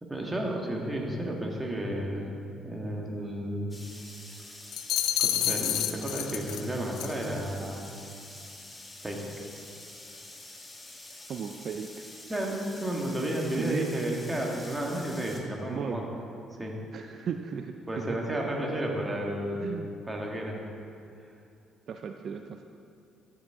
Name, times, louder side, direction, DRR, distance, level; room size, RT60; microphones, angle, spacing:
voice 1, 0.0-2.3 2.6-3.7 5.2-7.8 9.0-9.2 12.3-16.0 16.6-16.8 17.9-20.6, right 1 dB, 15° right, -1 dB, 1.7 m, -32 dB
sound 1, 3.7-15.4, left 2 dB, 15° left, 1.3 m, -47 dB
sound 2, 4.7-6.6 7.0-7.2, left 11 dB, 80° left, 0.4 m, -29 dB
voice 2, 11.3-12.1 13.6-14.0 15.7-16.0 16.9-18.2 19.6-19.9 21.9-22.7, right 7 dB, 55° right, 5 dB, 0.4 m, -36 dB
13.0 x 7.3 x 3.7 m, 2.5 s
cardioid pair, 100°, 0 cm